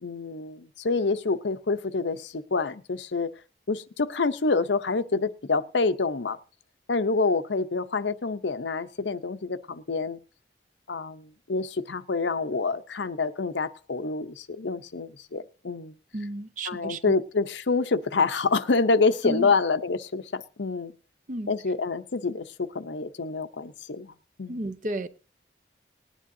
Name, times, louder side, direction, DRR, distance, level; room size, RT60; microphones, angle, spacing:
voice 1, 0.0-3.3 3.7-6.4 6.9-10.2 10.9-15.9 16.7-20.9 21.5-24.1 24.4-24.6, left 4 dB, 85° left, 0.7 m, -27 dB
voice 2, 16.1-17.1 19.2-19.5 21.3-21.5 24.5-25.1, right 1 dB, 45° right, 0.7 m, -32 dB
19.5 x 10.0 x 2.7 m
head